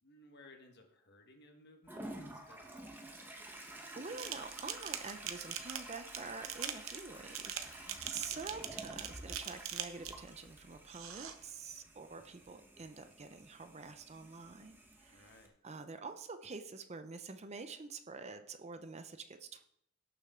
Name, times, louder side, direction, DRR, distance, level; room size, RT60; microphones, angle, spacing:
voice 1, 0.0-3.2 7.8-8.1 15.1-15.5, left 2 dB, 50° left, 4 dB, 1.5 m, -60 dB
Toilet flush, 1.9-15.5, right 1 dB, 10° right, 1.1 m, -51 dB
voice 2, 4.0-15.3 15.6-19.7, right 4 dB, 30° right, 8 dB, 0.6 m, -47 dB
sound 1, 4.2-10.3 10.9-11.4, right 9 dB, 65° right, 0.9 m, -42 dB
17.5 x 6.8 x 3.7 m, 0.73 s
head